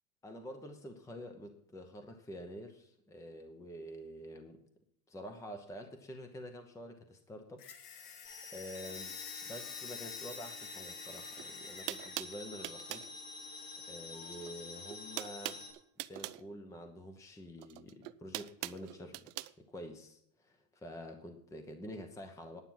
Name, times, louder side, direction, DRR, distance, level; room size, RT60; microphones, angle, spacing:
voice 1, 0.2-4.6 5.1-9.1 9.4-13.1 13.9-15.6 16.1-19.3 19.6-22.6, equal, 5° left, 6 dB, 0.8 m, -48 dB
sound 1, 7.6-12.2, left 8 dB, 90° left, 1.8 m, -49 dB
sound 2, 8.2-15.7, left 3 dB, 65° left, 5.8 m, -48 dB
sound 3, 11.4-11.5 11.9-13.1 14.3-14.6 14.9-16.4 17.6-19.5, right 18 dB, 90° right, 0.7 m, -42 dB
10.0 x 9.6 x 5.9 m, 0.71 s
supercardioid pair, 150°, 45 cm